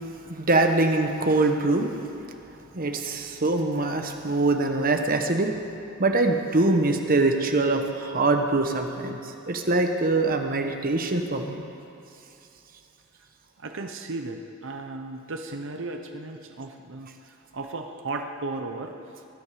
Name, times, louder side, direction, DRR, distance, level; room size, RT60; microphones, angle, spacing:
voice 1, 0.3-1.9 2.7-5.5 6.0-11.6, right 2 dB, 45° right, 5 dB, 1.1 m, -23 dB
voice 2, 13.6-17.1 17.5-19.0, right 3 dB, 65° right, 4 dB, 0.9 m, -35 dB
20.0 x 10.5 x 4.9 m, 2.8 s
head